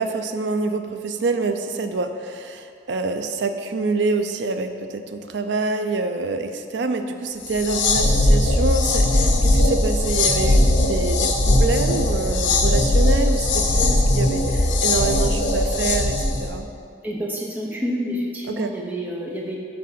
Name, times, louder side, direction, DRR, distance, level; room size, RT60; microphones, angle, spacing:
voice 1, 0.0-16.7 18.5-18.7, right 3 dB, 75° right, 7 dB, 0.5 m, -26 dB
sound 1, 7.4-16.5, left 1 dB, 80° left, 0.8 m, -19 dB
voice 2, 17.0-19.6, equal, 10° right, -3 dB, 0.8 m, -28 dB
7.6 x 3.7 x 5.9 m, 2.4 s
head